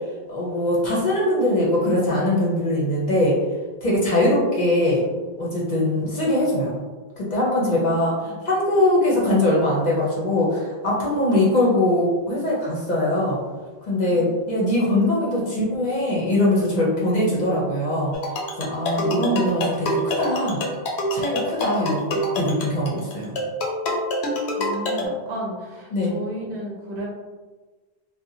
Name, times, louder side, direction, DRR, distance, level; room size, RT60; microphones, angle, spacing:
voice 1, 0.3-3.4 3.8-5.0 5.4-6.8 7.2-13.4 13.9-18.2 18.6-20.6 21.1-23.3 25.9-26.1, left 1 dB, 50° left, -5 dB, 0.7 m, -22 dB
voice 2, 7.6-8.0 8.2-8.4 24.5-27.1, equal, 80° right, -3 dB, 1.0 m, -34 dB
sound 1, 18.1-25.0, left 1 dB, 85° left, 0.8 m, -26 dB
2.8 x 2.1 x 2.6 m, 1.3 s
omnidirectional pair, 1.1 m